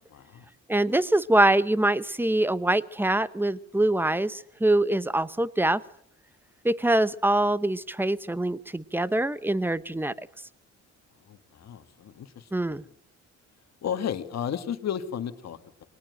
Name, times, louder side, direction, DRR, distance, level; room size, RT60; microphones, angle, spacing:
voice 1, 0.1-0.5 11.3-12.8 13.8-15.8, left 8 dB, 60° left, 9 dB, 1.8 m, -34 dB
voice 2, 0.7-5.8 6.6-10.1 12.5-12.8, right 1 dB, 5° right, 16 dB, 1.0 m, -24 dB
22.0 x 19.0 x 6.5 m, 0.68 s
cardioid pair, 90°, 30 cm